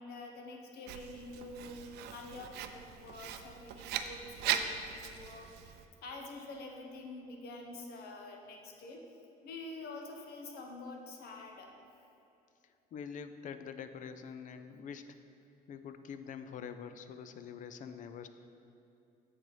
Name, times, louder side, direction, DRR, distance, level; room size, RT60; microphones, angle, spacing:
voice 1, 0.0-5.7 6.0-9.0 9.4-11.7, left 2 dB, 70° left, 2 dB, 1.0 m, -47 dB
Writing, 0.9-5.9, right 9 dB, 75° right, 0.4 m, -39 dB
voice 2, 12.6-15.2 15.7-18.3, left 7 dB, 50° left, 10 dB, 0.4 m, -45 dB
7.5 x 4.0 x 4.8 m, 2.8 s
cardioid pair, 110°, 17 cm